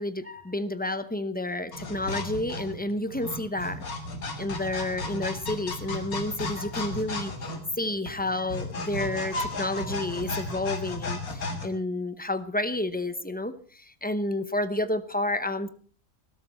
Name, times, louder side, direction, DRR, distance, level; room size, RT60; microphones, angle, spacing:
voice 1, 0.0-3.9 4.4-7.3 7.8-15.7, left 1 dB, 10° left, 11 dB, 0.4 m, -30 dB
sound 1, 1.7-11.7, left 2 dB, 75° left, 2.3 m, -34 dB
19.0 x 12.5 x 4.3 m, 0.43 s
omnidirectional pair, 1.5 m